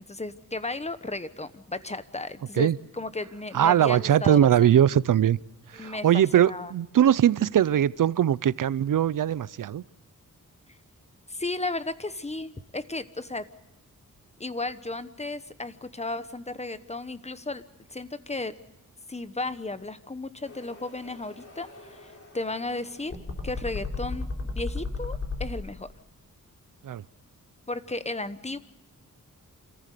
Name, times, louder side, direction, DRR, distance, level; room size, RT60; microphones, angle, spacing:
voice 1, 0.1-2.7 2.9-4.5 5.7-6.7 11.3-13.5 14.4-17.6 17.9-18.5 19.1-23.1 23.4-25.9 27.7-28.6, left 2 dB, 20° left, 1.1 m, -34 dB
voice 2, 3.5-5.4 5.7-9.8 26.8-27.0, right 10 dB, 70° right, 0.6 m, -21 dB
sound 1, 20.4-25.5, left 3 dB, 40° left, 3.8 m, -35 dB
27.5 x 14.5 x 6.7 m
wide cardioid pair, 85°, 34 cm